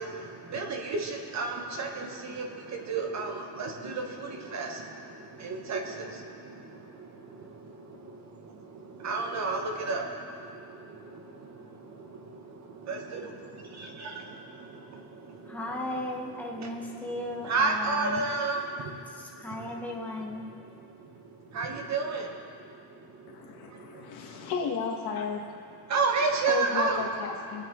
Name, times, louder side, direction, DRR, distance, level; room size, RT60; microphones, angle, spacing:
voice 1, 0.0-15.9 16.5-19.8 20.4-24.5 25.8-27.0, right 4 dB, 40° right, 2 dB, 1.7 m, -34 dB
voice 2, 15.5-18.3 19.1-20.5, left 1 dB, 5° left, -2 dB, 1.7 m, -36 dB
voice 3, 23.3-25.4 26.5-27.6, left 5 dB, 70° left, 0 dB, 2.2 m, -33 dB
24.5 x 9.0 x 4.1 m, 2.4 s
cardioid pair, 135°, 40 cm